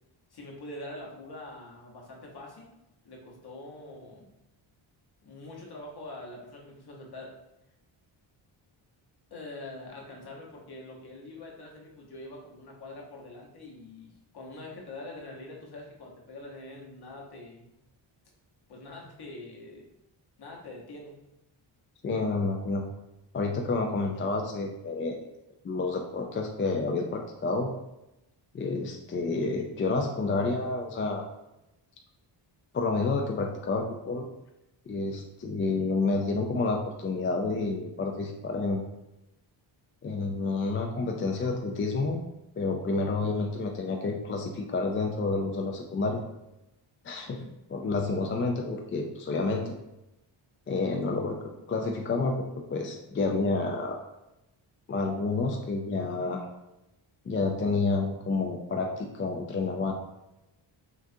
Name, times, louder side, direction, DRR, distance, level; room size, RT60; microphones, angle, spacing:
voice 1, 0.3-2.7 3.0-4.3 5.2-7.3 9.3-17.7 18.7-19.8 20.4-21.2 47.2-47.5, left 2 dB, 50° left, -1 dB, 1.0 m, -44 dB
voice 2, 22.0-22.8 23.3-25.2 25.6-27.7 28.5-31.3 32.7-34.3 34.9-38.8 40.0-42.2 42.6-46.2 47.0-47.4 47.7-49.7 50.7-51.4 51.7-54.0 54.9-56.5 57.3-59.9, left 3 dB, 30° left, 2 dB, 0.3 m, -29 dB
6.0 x 2.4 x 2.6 m, 0.93 s
cardioid pair, 120°, 49 cm